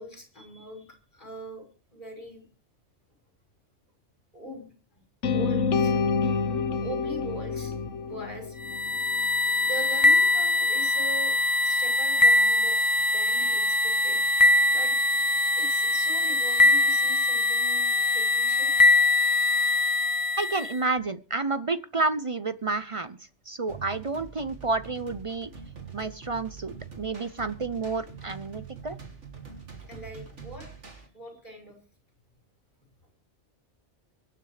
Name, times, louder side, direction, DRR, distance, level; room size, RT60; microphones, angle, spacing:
voice 1, 0.0-1.7 1.9-2.4 4.3-5.0 5.3-6.1 6.8-7.7 8.0-9.0 9.6-11.4 11.6-14.2 14.7-14.9 15.5-18.7 29.9-30.7 31.1-31.8, right 1 dB, 40° left, 4 dB, 5.7 m, -41 dB
sound 1, 5.2-9.3, left 5 dB, 85° left, 1.4 m, -28 dB
sound 2, 8.6-20.8, left 2 dB, 20° left, 0.9 m, -22 dB
voice 2, 20.4-23.2 23.5-25.5 25.9-29.0, right 3 dB, 35° right, 13 dB, 0.6 m, -30 dB
sound 3, 23.7-31.1, right 6 dB, 85° right, 3.0 m, -44 dB
24.0 x 9.4 x 3.3 m, 0.36 s
omnidirectional pair, 1.2 m